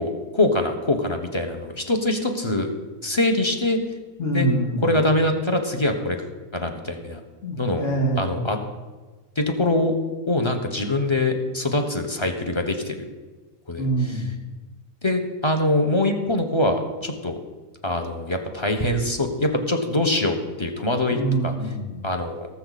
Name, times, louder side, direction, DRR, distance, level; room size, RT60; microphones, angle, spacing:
voice 1, 0.0-2.7 3.0-3.8 4.3-4.5 4.8-6.2 6.5-7.2 7.6-7.8 8.2-8.6 9.4-9.9 10.3-13.0 13.7-14.2 15.0-17.4 17.8-21.5 22.0-22.5, left 1 dB, 25° left, 4 dB, 1.2 m, -23 dB
voice 2, 4.2-4.9 7.4-8.5 13.8-14.3 21.1-22.1, right 2 dB, 75° left, -1 dB, 2.5 m, -25 dB
18.5 x 7.0 x 4.2 m, 1.3 s
omnidirectional pair, 1.3 m